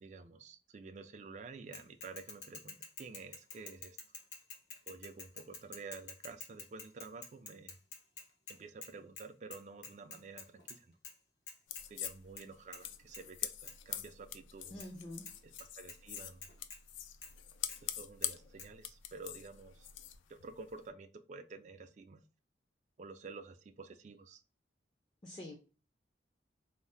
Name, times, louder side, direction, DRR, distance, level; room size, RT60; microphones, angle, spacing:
voice 1, 0.0-4.0 4.9-7.8 8.5-11.0 11.9-14.8 15.4-16.5 17.8-19.9 20.3-22.2 23.0-24.4, right 4 dB, 40° right, 8 dB, 0.3 m, -50 dB
Bicycle / Mechanisms, 1.7-8.9 9.2-9.3 9.5-10.8 11.0-11.1 11.5-12.4 12.7-12.9 13.1-13.2 13.7-13.8 14.8-14.9 15.3-15.4 15.6-16.8 17.2-17.3 17.7-17.8 18.2-18.3 18.6-18.7, left 4 dB, 75° left, 0.8 m, -48 dB
sound 1, 11.7-20.9, left 11 dB, 90° left, 0.3 m, -44 dB
voice 2, 14.7-15.3 25.2-25.6, left 1 dB, 25° left, -1 dB, 0.4 m, -46 dB
2.6 x 2.0 x 3.3 m, 0.35 s
head